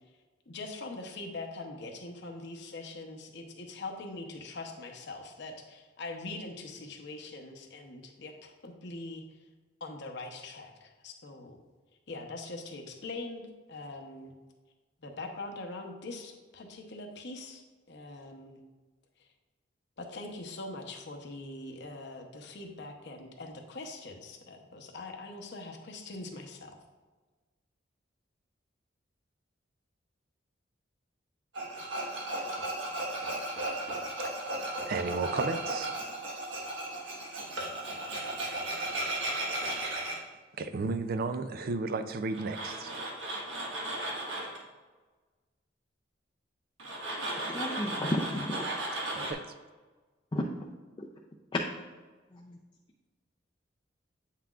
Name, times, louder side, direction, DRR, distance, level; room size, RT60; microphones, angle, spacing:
voice 1, 0.5-9.2 9.8-11.6 12.1-14.3 15.0-18.6 19.2-19.3 20.0-26.8, left 2 dB, 65° left, 0.8 m, -42 dB
Tools, 31.5-40.2 42.3-44.6 46.8-49.3, right 1 dB, 90° right, 1.4 m, -35 dB
voice 2, 34.9-35.9 40.6-43.0 49.1-49.4, right 3 dB, 55° right, 0.4 m, -33 dB
voice 3, 47.4-48.6 50.3-50.6 51.0-51.1 52.3-52.6, left 1 dB, 25° left, 0.5 m, -33 dB
8.3 x 5.7 x 2.4 m
head